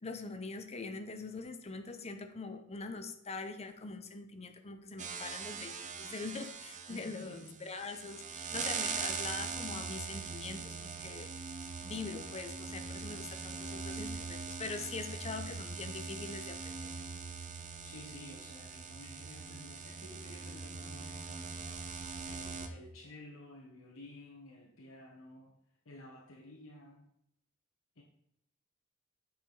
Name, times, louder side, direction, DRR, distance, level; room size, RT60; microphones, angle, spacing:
voice 1, 0.0-11.3 11.8-16.9, left 3 dB, 30° left, 7 dB, 0.7 m, -43 dB
sound 1, 5.0-22.7, right 5 dB, 35° right, 0.6 m, -42 dB
voice 2, 6.9-7.6 17.8-25.6 25.8-27.1 28.0-28.1, left 1 dB, 65° left, -2 dB, 1.1 m, -52 dB
8.7 x 4.9 x 3.9 m, 0.77 s
head